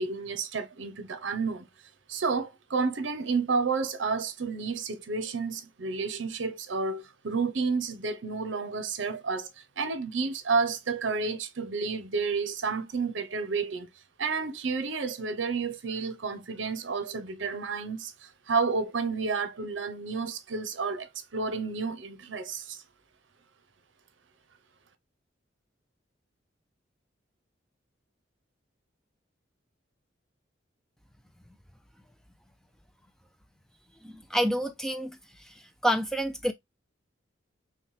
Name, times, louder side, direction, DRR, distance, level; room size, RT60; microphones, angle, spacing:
voice 1, 0.0-1.7 2.1-9.5 9.8-13.9 14.2-22.8, right 4 dB, 75° right, 0.7 m, -31 dB
voice 2, 34.0-35.5 35.8-36.5, equal, 5° left, 0.3 m, -28 dB
5.7 x 2.2 x 3.2 m
head